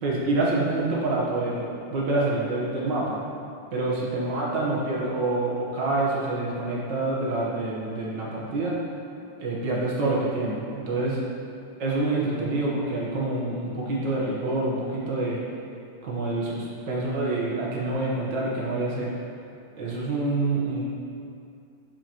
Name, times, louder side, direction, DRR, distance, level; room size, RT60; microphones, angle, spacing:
voice 1, 0.0-3.2 3.7-8.8 9.4-11.2 11.8-15.4 16.0-19.1 19.8-20.8, right 2 dB, 60° right, -5 dB, 1.8 m, -27 dB
7.6 x 6.9 x 3.0 m, 2.5 s
omnidirectional pair, 2.4 m